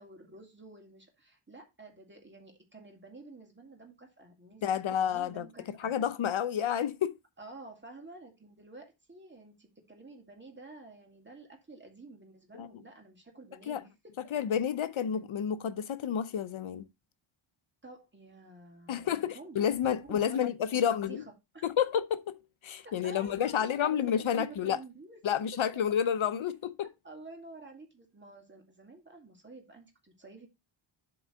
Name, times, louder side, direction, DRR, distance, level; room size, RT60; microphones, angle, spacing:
voice 1, 0.0-4.6 4.9-5.9 7.4-14.1 17.8-19.6 20.0-21.6 22.8-25.6 27.0-30.5, right 2 dB, 20° right, 2.3 m, -50 dB
voice 2, 4.6-5.5 5.8-7.1 12.5-12.7 13.7-13.8 14.3-16.9 18.9-21.2 21.6-24.8 25.2-26.9, left 8 dB, 70° left, 0.8 m, -30 dB
7.8 x 3.9 x 6.4 m
wide cardioid pair, 155°, 50 cm